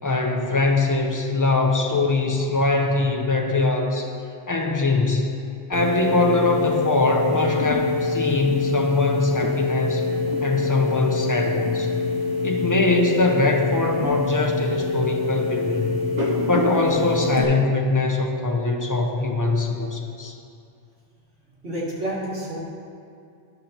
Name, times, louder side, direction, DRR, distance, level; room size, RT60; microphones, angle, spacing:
voice 1, 0.0-4.2 4.5-5.4 5.7-10.1 10.4-11.9 12.4-15.9 16.4-20.3, left 3 dB, 25° left, 1 dB, 0.4 m, -22 dB
sound 1, 5.7-17.4, left 3 dB, 45° right, 1.0 m, -25 dB
voice 2, 21.6-22.6, right 1 dB, 85° right, -7 dB, 2.1 m, -29 dB
10.5 x 6.6 x 2.9 m, 2.4 s
omnidirectional pair, 1.1 m